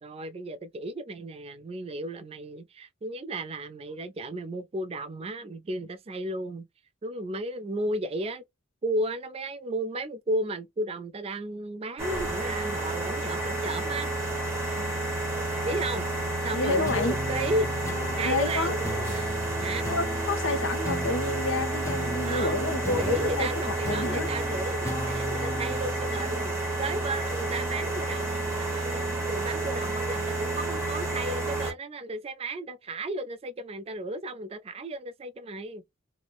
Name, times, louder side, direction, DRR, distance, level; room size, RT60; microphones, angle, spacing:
voice 1, 0.0-6.7 7.0-8.4 8.8-14.1 15.6-16.1 16.4-17.7 18.2-19.3 19.6-19.9 22.2-35.8, right 1 dB, 30° right, 0.4 m, -34 dB
sound 1, 12.0-31.7, right 2 dB, 15° right, 1.0 m, -30 dB
voice 2, 16.5-17.1 18.2-18.7 19.9-24.3, left 2 dB, 70° left, 0.7 m, -29 dB
sound 2, 16.9-27.7, left 1 dB, 15° left, 0.7 m, -38 dB
3.1 x 2.0 x 2.3 m
head